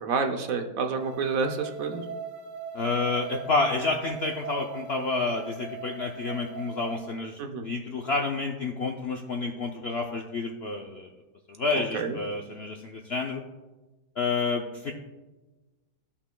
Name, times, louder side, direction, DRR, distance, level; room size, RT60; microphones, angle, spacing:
voice 1, 0.0-2.0 7.4-7.6 11.9-12.2, right 5 dB, 65° right, 5 dB, 1.0 m, -28 dB
sound 1, 1.0-7.0, right 4 dB, 85° right, 1.6 m, -40 dB
voice 2, 2.7-11.1 11.5-13.4 14.2-14.9, left 3 dB, 65° left, 2 dB, 0.6 m, -29 dB
15.0 x 5.6 x 2.2 m, 1.2 s
omnidirectional pair, 1.7 m